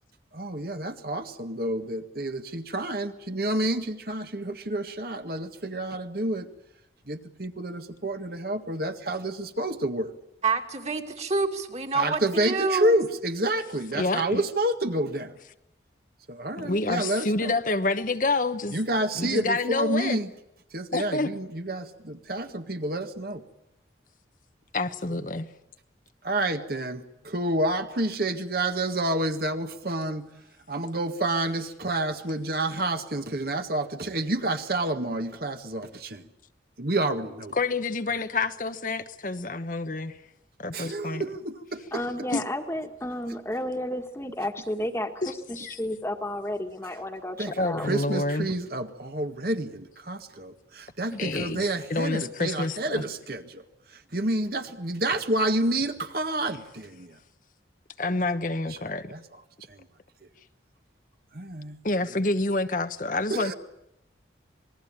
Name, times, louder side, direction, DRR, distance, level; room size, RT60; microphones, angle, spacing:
voice 1, 0.3-6.5 7.1-10.1 11.9-15.3 16.3-17.5 18.7-20.3 20.7-23.4 26.2-30.3 30.7-36.3 36.8-37.5 40.7-42.0 47.4-53.6 53.9-57.2 58.2-58.3 59.1-59.2 59.7-59.9 61.3-61.8 63.3-63.5, right 1 dB, 55° right, 1.7 m, -29 dB
voice 2, 10.4-12.9, right 4 dB, 35° right, 2.6 m, -27 dB
voice 3, 13.9-14.4 16.6-18.8 19.1-20.2 20.9-21.3 24.7-25.5 37.5-40.2 40.6-41.2 42.3-42.4 45.2-45.3 45.6-45.8 47.6-48.5 51.1-53.0 58.0-59.1 61.8-63.5, left 2 dB, 45° left, 1.0 m, -28 dB
voice 4, 41.9-47.9, left 1 dB, 15° left, 1.7 m, -32 dB
27.0 x 20.5 x 8.8 m
head